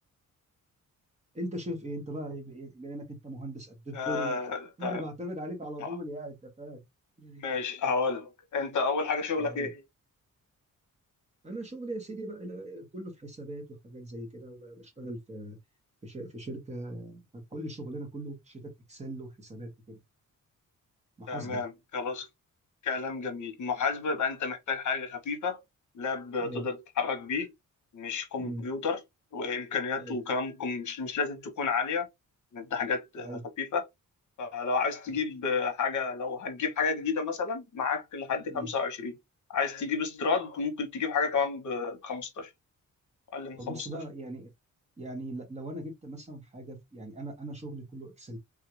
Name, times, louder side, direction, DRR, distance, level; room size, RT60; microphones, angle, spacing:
voice 1, 1.3-4.5 4.8-6.8 7.2-7.4 9.4-9.7 11.4-15.6 16.0-17.2 17.5-18.6 18.9-20.0 21.2-21.6 26.4-26.7 28.4-28.6 30.0-30.2 33.2-33.4 38.5-38.7 43.6-44.5 45.0-48.4, right 1 dB, 20° right, 1.1 m, -39 dB
voice 2, 3.9-5.0 5.8-5.9 7.4-9.8 21.3-22.3 22.8-25.6 25.9-27.5 27.9-29.0 29.3-32.1 32.5-33.8 34.4-39.2 39.5-42.5 43.3-43.9, left 5 dB, 65° left, 1.0 m, -31 dB
3.6 x 2.4 x 3.0 m
wide cardioid pair, 175°, 32 cm